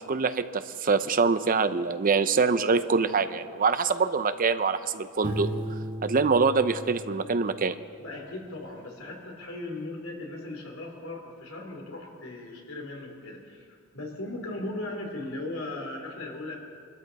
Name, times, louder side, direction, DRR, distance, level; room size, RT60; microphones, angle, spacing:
voice 1, 0.0-5.5 6.0-7.8, right 4 dB, 40° right, 11 dB, 0.6 m, -24 dB
Piano, 5.2-8.0, equal, 25° right, 4.0 m, -36 dB
voice 2, 8.0-16.6, left 2 dB, 80° left, 0 dB, 3.2 m, -38 dB
25.0 x 13.0 x 4.1 m, 2.2 s
head